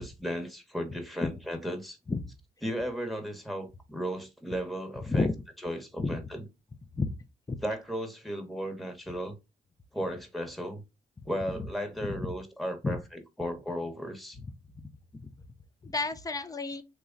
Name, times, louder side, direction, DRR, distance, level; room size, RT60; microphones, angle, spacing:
voice 1, 0.0-2.0 2.6-5.3 5.6-6.4 7.6-9.3 9.9-10.8 11.3-13.0 13.4-14.4, equal, ahead, 1.1 m, -35 dB
voice 2, 15.8-16.8, left 3 dB, 15° left, 0.6 m, -30 dB
3.1 x 2.2 x 3.8 m
supercardioid pair, 45°, 20 cm